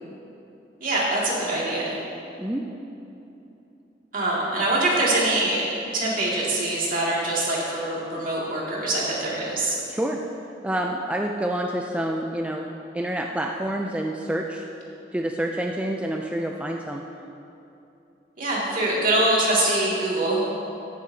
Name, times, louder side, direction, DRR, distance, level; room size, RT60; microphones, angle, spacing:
voice 1, 0.8-1.9 4.1-5.6 5.9-9.7 18.4-20.4, right 2 dB, 50° right, -5 dB, 2.2 m, -24 dB
voice 2, 9.9-10.2 10.6-12.7 12.9-14.6 15.1-17.0, right 1 dB, 5° right, 1 dB, 0.3 m, -27 dB
13.5 x 9.2 x 2.7 m, 2.9 s
head